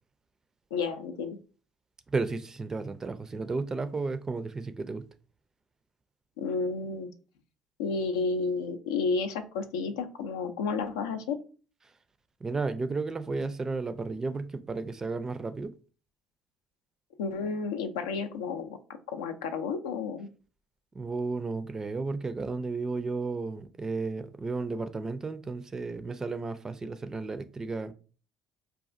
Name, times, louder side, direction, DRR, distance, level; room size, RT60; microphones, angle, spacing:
voice 1, 0.7-1.4 6.4-7.1 7.8-11.4 17.2-18.8 19.1-20.3, left 4 dB, 75° left, 0.4 m, -31 dB
voice 2, 2.1-5.0 12.4-15.7 20.9-27.9, right 3 dB, 25° right, 0.4 m, -33 dB
4.0 x 2.4 x 2.5 m
figure-of-eight pair, 55°, 2 cm